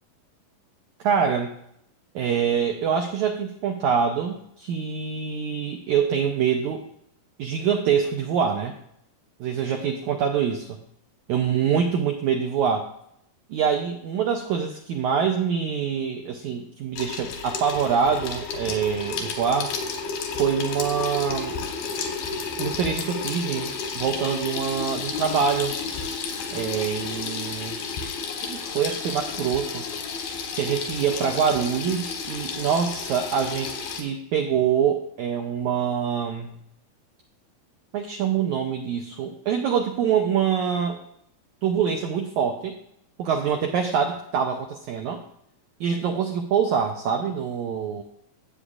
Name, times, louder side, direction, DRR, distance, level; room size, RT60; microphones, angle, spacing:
voice 1, 1.0-1.5 2.1-6.8 7.4-8.8 9.4-10.8 11.3-12.9 13.5-19.7 20.4-21.5 22.6-25.7 26.5-27.8 28.5-29.9 30.5-36.6 37.9-41.0 41.6-42.8 43.2-45.2 45.8-48.0, right 7 dB, 85° right, 4 dB, 1.7 m, -25 dB
Water tap faucet / Sink (filling or washing), 17.0-34.0, left 5 dB, 90° left, 3.2 m, -32 dB
15.0 x 8.3 x 2.4 m, 0.74 s
omnidirectional pair, 4.2 m